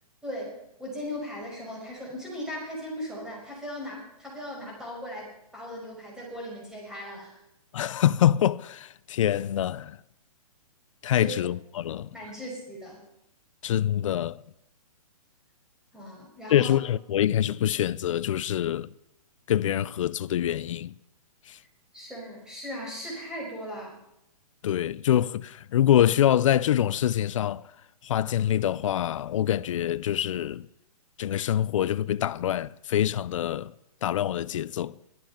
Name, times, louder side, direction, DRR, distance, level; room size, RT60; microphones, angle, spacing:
voice 1, 0.2-7.4 11.2-11.3 12.1-13.0 15.9-16.7 21.9-24.0, equal, 5° right, 5.7 m, -38 dB
voice 2, 7.7-10.0 11.0-12.2 13.6-14.4 16.5-18.9 19.5-21.0 21.5-21.6 24.6-27.7 28.0-30.7 31.2-33.7 34.0-35.0, left 11 dB, 55° left, 0.5 m, -25 dB
16.5 x 13.0 x 5.8 m
hypercardioid pair, 150°, 19 cm